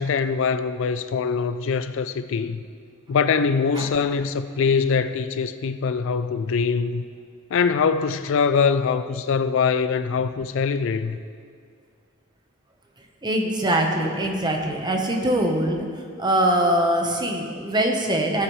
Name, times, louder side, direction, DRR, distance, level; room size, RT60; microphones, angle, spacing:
voice 1, 0.0-2.6 3.1-7.0 7.5-11.2, left 5 dB, 65° left, 0.4 m, -23 dB
voice 2, 13.2-15.8 16.2-18.4, right 1 dB, 20° right, 1.0 m, -22 dB
15.5 x 8.1 x 3.2 m
head